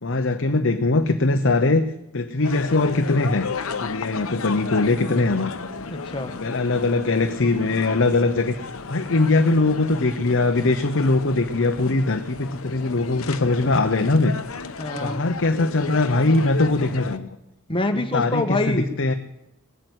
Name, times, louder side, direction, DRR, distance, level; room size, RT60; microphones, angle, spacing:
voice 1, 0.0-1.9 2.1-3.5 3.8-5.7 6.4-8.6 8.9-14.3 15.0-17.3 17.9-19.1, left 2 dB, 65° left, 6 dB, 0.9 m, -21 dB
sound 1, 2.4-17.2, left 4 dB, 85° left, 1.0 m, -33 dB
voice 2, 5.9-6.3 14.8-15.2 17.7-18.9, left 2 dB, 25° left, 6 dB, 1.3 m, -25 dB
19.0 x 8.8 x 8.2 m, 0.87 s
head